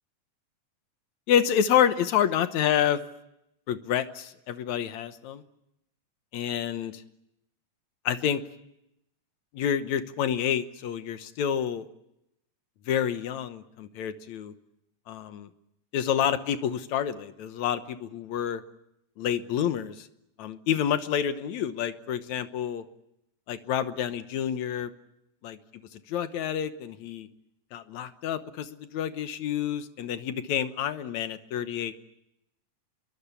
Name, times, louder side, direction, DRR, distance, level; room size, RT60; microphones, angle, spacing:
voice 1, 1.3-3.0 3.7-5.4 6.3-7.0 8.1-8.4 9.5-11.9 12.9-14.5 15.1-15.5 15.9-18.6 19.2-20.1 20.4-22.8 23.5-24.9 25.4-25.6 26.1-27.3 27.7-31.9, left 9 dB, 70° left, 11 dB, 2.4 m, -28 dB
26.0 x 23.0 x 8.3 m, 0.83 s
omnidirectional pair, 3.5 m